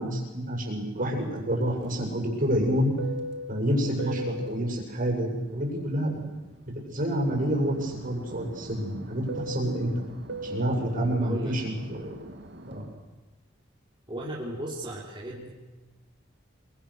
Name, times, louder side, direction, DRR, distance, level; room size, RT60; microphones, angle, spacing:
voice 1, 0.0-2.9 3.5-6.2 6.8-10.0 10.4-12.2 12.7-12.9, equal, 45° right, 0 dB, 7.3 m, -28 dB
Fixed-wing aircraft airplane, 1.4-6.7 7.1-12.9, right 1 dB, 65° right, 2.3 m, -40 dB
voice 2, 11.2-11.5 14.1-15.5, right 1 dB, 25° right, -6 dB, 4.0 m, -36 dB
27.5 x 24.0 x 6.7 m, 1.1 s
head